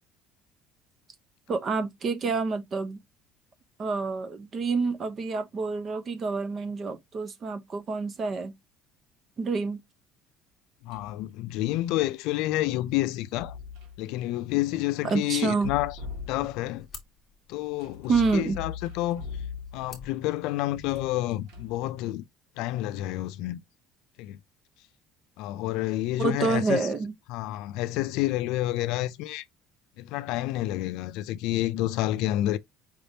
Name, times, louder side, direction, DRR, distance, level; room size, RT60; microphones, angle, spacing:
voice 1, 1.5-3.0 3.8-8.5 9.4-9.8 15.0-15.7 18.1-18.6 26.2-27.1, right 4 dB, 30° right, 0.6 m, -28 dB
voice 2, 10.8-13.6 14.0-16.0 16.3-16.9 17.5-19.2 19.7-22.2 22.6-23.6 24.2-24.4 25.4-26.9 27.3-29.5 30.0-32.6, left 15 dB, 70° left, 0.4 m, -29 dB
sound 1, 10.9-11.2 13.1-14.0 15.5-16.8 17.8-20.0 20.7-21.8, left 5 dB, 70° right, 2.1 m, -40 dB
sound 2, 16.1-21.1, left 5 dB, 20° left, 1.2 m, -52 dB
5.0 x 3.4 x 2.7 m
cardioid pair, 160°, 0 cm